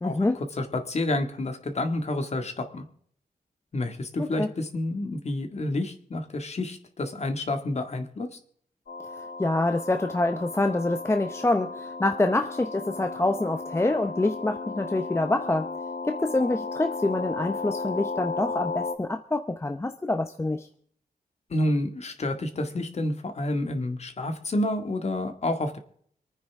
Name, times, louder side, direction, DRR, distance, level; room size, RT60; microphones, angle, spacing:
voice 1, 0.0-0.4 4.4-4.5 9.4-15.7 16.0-20.7, left 2 dB, 15° left, 7 dB, 0.7 m, -26 dB
voice 2, 0.6-2.8 3.7-8.3 21.5-25.8, left 1 dB, 45° left, 6 dB, 1.9 m, -29 dB
sound 1, 8.9-18.9, left 3 dB, 70° left, 1.4 m, -35 dB
26.5 x 9.6 x 3.6 m, 0.62 s
wide cardioid pair, 145°, 16 cm